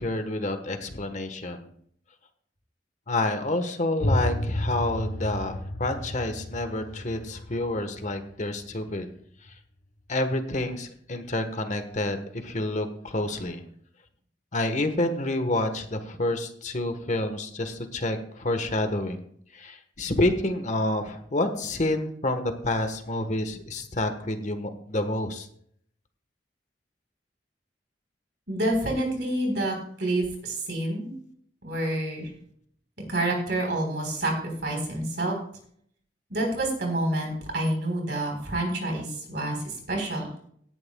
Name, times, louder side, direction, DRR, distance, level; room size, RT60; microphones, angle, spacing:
voice 1, 0.0-1.7 3.1-9.1 10.1-13.6 14.5-19.2 19.5-25.5, left 1 dB, 45° left, 7 dB, 1.2 m, -28 dB
sound 1, 4.0-9.6, left 1 dB, 80° left, 1.3 m, -32 dB
voice 2, 28.5-31.1 31.6-32.3 33.1-35.3 36.3-40.2, right 1 dB, 65° right, 2 dB, 4.0 m, -28 dB
17.5 x 10.5 x 2.3 m, 0.63 s
head